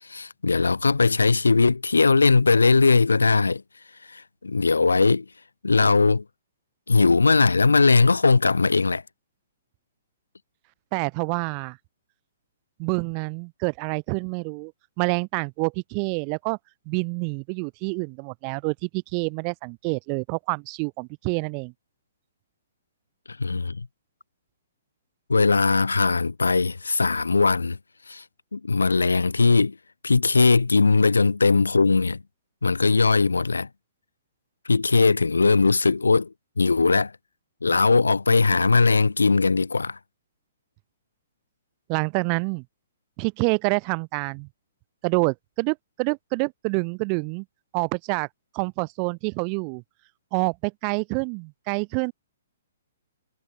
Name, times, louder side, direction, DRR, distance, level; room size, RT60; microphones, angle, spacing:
voice 1, 0.1-3.6 4.1-5.3 5.6-6.2 6.9-9.0 23.4-23.9 25.3-27.8 28.1-28.2 28.5-29.7 30.0-32.2 32.6-33.7 34.7-36.3 36.6-37.1 37.6-40.0, left 4 dB, 90° left, 0.6 m, -19 dB
voice 2, 10.9-11.8 12.8-14.7 15.0-16.6 16.9-21.7 41.9-42.6 43.2-44.5 45.0-47.4 47.7-48.3 48.5-49.8 50.3-52.1, right 40 dB or more, 35° right, 1.0 m, -27 dB
hypercardioid pair, 130°, 0 cm